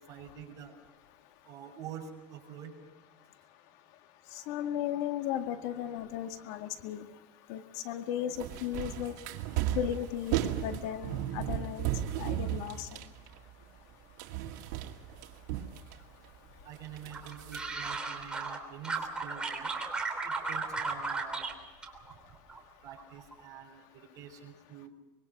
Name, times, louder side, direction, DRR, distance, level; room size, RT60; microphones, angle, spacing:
voice 1, 0.1-0.7 1.4-2.7 16.6-19.7 20.2-21.5 22.8-24.9, right 8 dB, 40° right, 1 dB, 6.2 m, -47 dB
voice 2, 4.5-7.1 7.5-9.1 9.7-10.4 10.6-11.9 12.2-12.9, left 10 dB, 75° left, 7 dB, 1.9 m, -35 dB
sound 1, 8.3-13.9 14.2-16.3 16.7-18.0, right 12 dB, 85° right, 2.1 m, -35 dB
sound 2, 17.1-18.6 18.8-21.5 21.8-22.6 22.9-23.3, right 4 dB, 10° right, 3.4 m, -35 dB
25.0 x 22.5 x 6.0 m, 1.1 s
cardioid pair, 150°, 9 cm